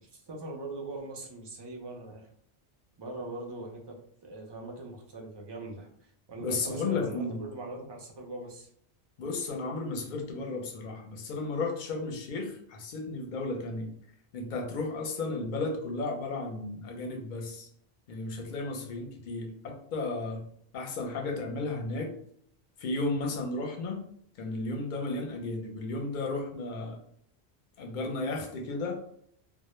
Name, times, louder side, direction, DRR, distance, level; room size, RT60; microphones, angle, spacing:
voice 1, 0.0-2.3 3.0-3.9 4.2-8.7, right 2 dB, 40° right, -1 dB, 0.3 m, -41 dB
voice 2, 6.4-7.4 9.2-13.9 14.3-17.7 18.1-20.4 20.7-22.1 22.8-24.0 24.4-27.0 27.8-29.0, left 3 dB, 55° left, 2 dB, 0.6 m, -34 dB
2.1 x 2.0 x 3.0 m, 0.66 s
omnidirectional pair, 1.1 m